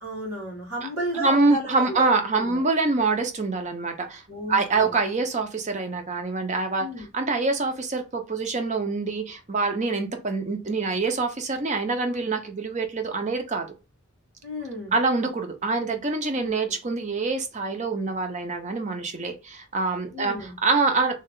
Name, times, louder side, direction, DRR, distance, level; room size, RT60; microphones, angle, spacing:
voice 1, 0.0-2.7 4.3-5.0 6.8-7.1 14.4-14.9 16.4-16.5 20.1-20.5, equal, 90° right, 2.0 m, -33 dB
voice 2, 1.1-4.2 4.5-6.8 7.1-13.7 14.9-21.1, right 3 dB, 35° right, 0.6 m, -25 dB
3.3 x 2.4 x 3.6 m
head